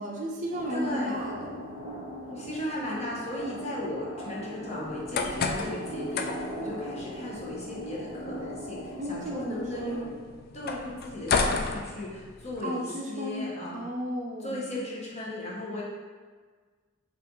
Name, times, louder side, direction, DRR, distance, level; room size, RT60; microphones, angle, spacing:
voice 1, 0.0-1.6 9.0-10.1 12.6-13.5 13.7-14.6, equal, 40° right, -1 dB, 0.5 m, -34 dB
sound 1, 0.5-10.0, equal, 90° left, 1.0 m, -40 dB
voice 2, 0.7-1.2 2.3-10.1 10.5-13.8 14.4-15.8, left 1 dB, 35° left, -5 dB, 0.9 m, -36 dB
sound 2, 4.9-12.6, left 4 dB, 50° left, 0.3 m, -33 dB
5.6 x 2.5 x 3.0 m, 1.5 s
head